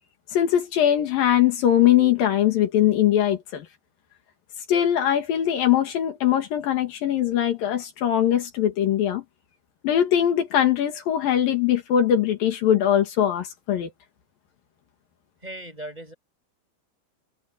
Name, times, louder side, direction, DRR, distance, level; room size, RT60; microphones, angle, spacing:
voice 1, 0.3-3.7 4.7-9.2 9.8-13.9, left 10 dB, 75° left, 3.6 m, -21 dB
voice 2, 15.4-16.1, right 1 dB, 10° right, 7.9 m, -37 dB
omnidirectional pair, 4.1 m